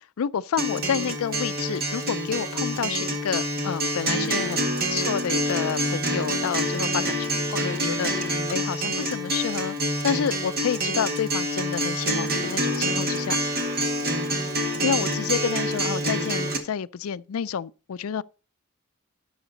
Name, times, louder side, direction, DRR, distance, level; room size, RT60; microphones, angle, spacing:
voice 1, 0.2-9.8 10.0-13.7 14.8-18.2, left 7 dB, 85° left, 0.4 m, -29 dB
Acoustic guitar, 0.6-16.6, equal, 45° right, 1.8 m, -27 dB
12.0 x 6.4 x 4.0 m
head